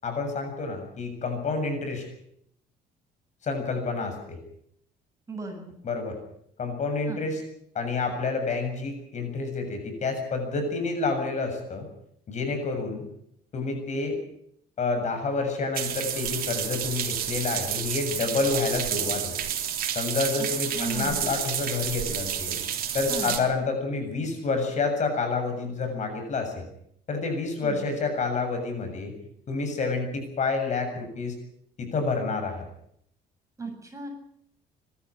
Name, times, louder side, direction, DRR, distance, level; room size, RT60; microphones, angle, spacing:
voice 1, 0.0-2.0 3.4-4.4 5.8-6.2 6.6-7.4 7.7-11.9 12.3-13.0 13.5-14.2 14.8-19.3 20.0-22.6 22.9-26.5 27.1-29.1 29.5-31.3 31.8-32.6, left 4 dB, 45° left, 5 dB, 7.3 m, -28 dB
voice 2, 5.3-5.7 7.1-7.3 20.7-21.3 23.1-23.3 27.6-27.8 33.6-34.1, right 4 dB, 20° right, 2 dB, 7.8 m, -35 dB
sound 1, 15.7-23.4, right 9 dB, 60° right, 3.4 m, -30 dB
24.0 x 13.0 x 10.0 m, 0.72 s
cardioid pair, 110°, 17 cm